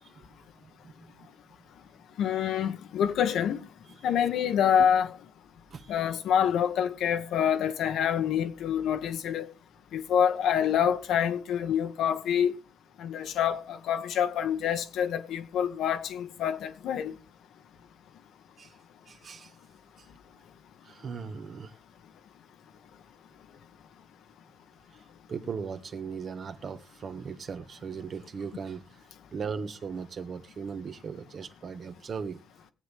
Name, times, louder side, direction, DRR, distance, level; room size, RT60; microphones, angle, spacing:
voice 1, 0.6-1.3 4.8-4.9 5.7-6.0 18.6-18.7 19.1-19.5 20.0-20.1 20.8-21.7 25.3-32.4, right 6 dB, 50° right, 1.4 m, -38 dB
voice 2, 2.2-3.6 4.0-5.1 5.9-9.5 9.9-12.5 13.0-17.1, left 8 dB, 75° left, 1.3 m, -26 dB
21.5 x 8.2 x 3.6 m
cardioid pair, 90°, 0 cm